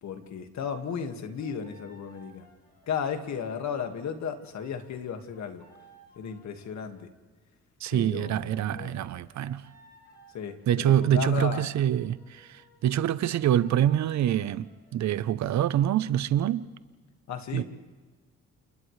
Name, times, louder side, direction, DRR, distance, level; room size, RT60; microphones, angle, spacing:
voice 1, 0.0-2.5 2.9-5.7 6.2-7.1 7.9-9.0 10.3-11.7 17.3-17.6, left 7 dB, 65° left, 2.0 m, -34 dB
sound 1, 0.9-7.1 8.9-15.1, right 1 dB, 30° left, 7.6 m, -59 dB
voice 2, 7.8-9.6 10.7-14.7 14.9-16.7 17.5-17.6, right 11 dB, 65° right, 0.8 m, -25 dB
30.0 x 28.5 x 3.3 m
cardioid pair, 90°, 30 cm